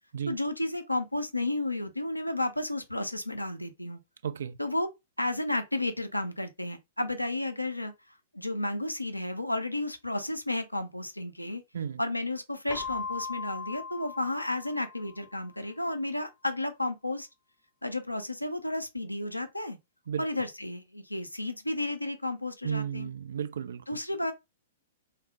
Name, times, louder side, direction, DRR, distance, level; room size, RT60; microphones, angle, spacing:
voice 1, 0.3-4.0 4.6-4.9 5.2-7.9 8.3-11.6 12.0-17.3 17.8-19.8 20.2-23.1 23.9-24.3, left 1 dB, 90° left, 0.5 m, -32 dB
voice 2, 4.2-4.6 11.7-12.0 20.1-20.4 22.6-23.8, right 8 dB, 60° right, 0.4 m, -34 dB
Keyboard (musical), 12.7-15.4, left 5 dB, 20° left, 0.5 m, -39 dB
3.2 x 2.0 x 2.8 m
figure-of-eight pair, 110°, 0 cm